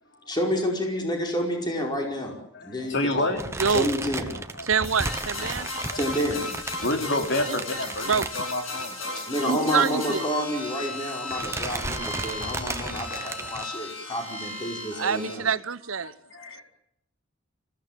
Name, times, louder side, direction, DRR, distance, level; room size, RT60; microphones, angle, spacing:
voice 1, 0.3-2.3 2.6-3.3 3.7-4.3 5.9-6.5 9.1-15.5, equal, 20° left, 5.1 m, -29 dB
voice 2, 2.5-3.7 4.5-4.7 5.4-6.2 6.8-9.2 16.0-16.6, left 1 dB, 55° left, 3.4 m, -30 dB
sound 1, 3.4-8.9 9.2-9.4 9.7-9.8 10.7-11.0 11.3-13.7, right 2 dB, 15° right, 1.2 m, -34 dB
voice 3, 4.6-5.7 8.1-8.3 9.5-10.2 14.9-16.1, right 6 dB, 75° right, 0.9 m, -25 dB
sound 2, 4.8-15.3, left 2 dB, 75° left, 7.6 m, -35 dB
25.5 x 16.5 x 9.2 m
head